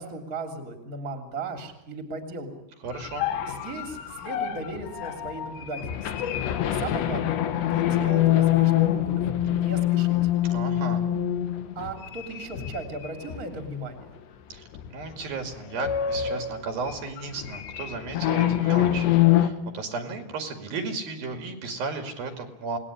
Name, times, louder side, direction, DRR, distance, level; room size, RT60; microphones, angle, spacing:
voice 1, 0.0-2.6 3.4-6.3 6.7-10.2 11.7-14.1, right 2 dB, 25° right, 5 dB, 3.1 m, -37 dB
voice 2, 2.8-3.3 10.5-11.0 14.5-14.6 14.9-22.8, right 4 dB, 60° right, 6 dB, 4.1 m, -34 dB
sound 1, 2.9-13.6 14.0-14.2 14.7-15.1 15.4-19.5, left 12 dB, 90° left, 3.8 m, -25 dB
28.0 x 20.0 x 9.8 m, 0.86 s
omnidirectional pair, 4.8 m